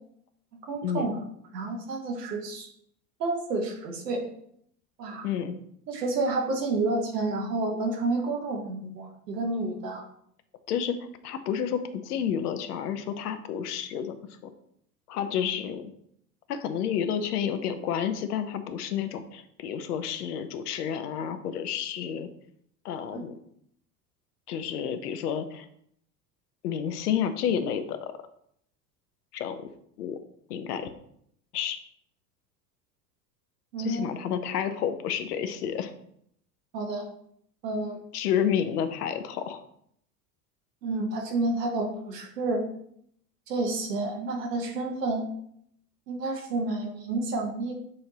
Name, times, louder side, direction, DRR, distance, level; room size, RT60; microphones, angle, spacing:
voice 1, 0.7-1.2 1.5-2.7 3.2-4.2 5.0-5.3 5.9-10.1 23.1-23.3 33.7-34.1 36.7-37.1 37.6-38.0 40.8-42.6 43.5-45.3 46.1-47.7, right 2 dB, 75° right, 2 dB, 1.1 m, -30 dB
voice 2, 5.2-5.5 10.7-11.0 11.2-14.2 14.4-14.5 15.1-15.9 16.5-22.3 22.8-23.3 24.5-25.7 26.6-28.1 29.3-29.7 30.0-30.2 30.5-30.9 31.5-31.8 33.8-35.9 38.1-39.6, left 8 dB, 70° left, 9 dB, 0.6 m, -30 dB
6.4 x 2.6 x 2.9 m, 0.70 s
figure-of-eight pair, 75°, 49 cm